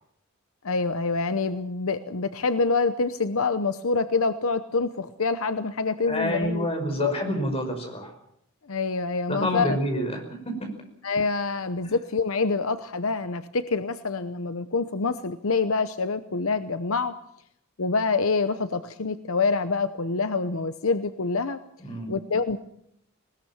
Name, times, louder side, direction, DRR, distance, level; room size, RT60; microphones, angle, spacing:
voice 1, 0.6-6.7 7.0-7.1 8.7-10.1 11.0-17.1 17.8-21.6 22.1-22.6, left 4 dB, 70° left, 11 dB, 0.9 m, -26 dB
voice 2, 6.1-8.1 9.3-10.7 21.8-22.1, equal, 25° left, 4 dB, 5.5 m, -28 dB
20.5 x 20.0 x 7.2 m, 0.75 s
head